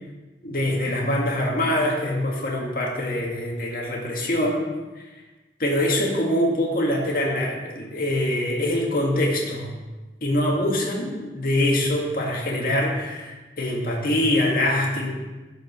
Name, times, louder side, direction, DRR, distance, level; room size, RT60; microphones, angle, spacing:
voice 1, 0.4-4.6 5.0-5.1 5.6-9.7 10.2-15.1, left 1 dB, 50° left, -2 dB, 1.9 m, -24 dB
11.0 x 5.3 x 5.5 m, 1.2 s
head